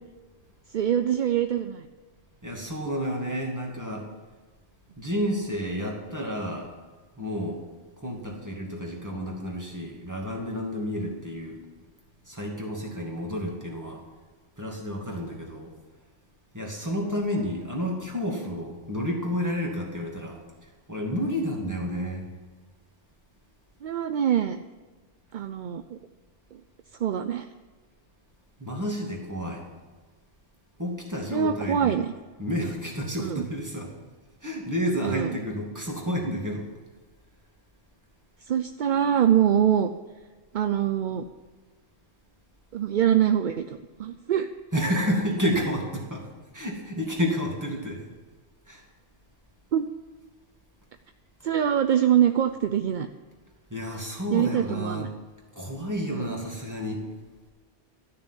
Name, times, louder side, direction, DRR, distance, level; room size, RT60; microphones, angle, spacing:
voice 1, 0.7-1.9 23.8-24.6 25.3-26.0 26.5-26.6 27.0-27.5 31.3-32.1 33.2-33.5 35.0-35.3 38.4-39.9 40.5-41.2 42.7-44.5 49.7-49.9 51.4-53.1 54.3-55.1 56.1-56.4, right 9 dB, 55° right, 9 dB, 0.6 m, -24 dB
voice 2, 2.4-4.1 5.0-6.7 7.2-7.6 8.0-11.6 12.2-14.0 14.6-15.7 16.5-22.3 28.6-29.7 30.8-32.0 32.4-33.9 34.4-36.7 44.7-46.3 46.5-48.0 48.7-48.8 53.7-55.1 55.5-57.1, equal, 15° right, -1 dB, 2.4 m, -30 dB
12.5 x 6.9 x 9.9 m, 1.3 s
omnidirectional pair, 1.2 m